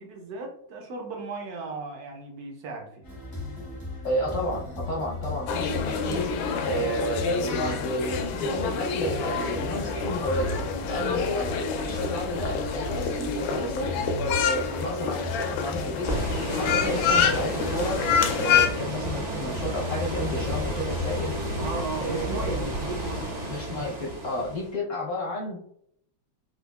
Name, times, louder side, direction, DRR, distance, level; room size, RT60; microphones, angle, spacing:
voice 1, 0.0-3.0 11.1-11.3 21.6-23.5, right 3 dB, 65° right, 2 dB, 0.9 m, -36 dB
sound 1, 3.0-21.8, left 2 dB, 35° left, 0.3 m, -36 dB
voice 2, 4.0-6.3 6.6-11.5 11.8-16.1 16.5-18.0 18.4-21.4 22.0-22.6 23.5-25.6, equal, 60° left, -3 dB, 0.8 m, -31 dB
sound 2, 5.5-18.7, left 6 dB, 80° left, 1.3 m, -27 dB
sound 3, 16.1-24.7, right 1 dB, 45° right, 0.5 m, -32 dB
4.6 x 2.4 x 2.3 m, 0.68 s
omnidirectional pair, 2.2 m